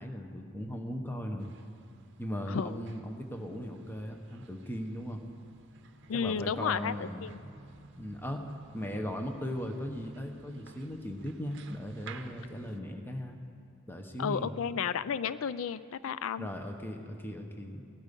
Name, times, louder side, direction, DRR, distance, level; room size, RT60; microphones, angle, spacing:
voice 1, 0.0-1.5 2.2-5.2 6.1-7.3 8.0-8.4 8.7-13.4 13.9-14.5 16.4-17.9, equal, 10° left, 4 dB, 1.0 m, -38 dB
sound 1, 1.4-12.8, right 3 dB, 60° right, 0.7 m, -53 dB
voice 2, 2.5-2.8 6.1-7.4 14.2-16.5, left 7 dB, 70° left, 16 dB, 0.4 m, -32 dB
18.0 x 12.5 x 5.3 m, 2.5 s
head